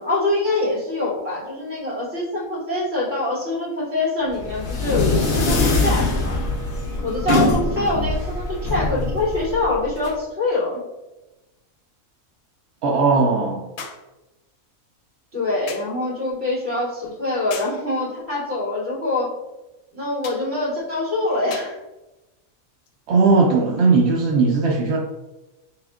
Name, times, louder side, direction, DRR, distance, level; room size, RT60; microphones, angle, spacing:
voice 1, 0.0-6.4 7.0-10.8 15.3-19.3 19.9-21.8, left 2 dB, 50° right, -7 dB, 1.9 m, -24 dB
sound 1, 4.3-10.1, left 2 dB, 50° left, 0.7 m, -23 dB
voice 2, 12.8-13.6 23.1-25.0, right 4 dB, 65° right, -2 dB, 0.7 m, -18 dB
sound 2, 13.8-14.1 15.7-16.0 17.5-17.8 20.2-20.5 21.5-21.8 22.9-23.0, left 6 dB, 80° left, 1.0 m, -37 dB
4.2 x 3.4 x 2.4 m, 1.0 s
omnidirectional pair, 1.4 m